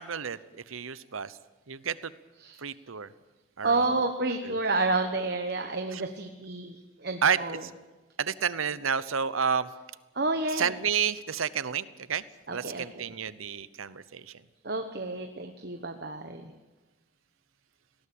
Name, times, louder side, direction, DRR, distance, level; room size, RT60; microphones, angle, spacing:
voice 1, 0.0-1.4 1.7-2.1 2.6-3.1 3.6-4.0 4.4-4.6 5.9-6.0 7.2-7.7 8.2-9.7 10.5-12.2 12.5-14.4, right 7 dB, 85° right, 16 dB, 0.9 m, -30 dB
voice 2, 3.6-6.8 7.0-7.6 10.1-10.7 12.5-12.8 14.6-16.4, right 3 dB, 50° right, 6 dB, 1.2 m, -29 dB
20.0 x 17.5 x 8.7 m, 1.2 s
head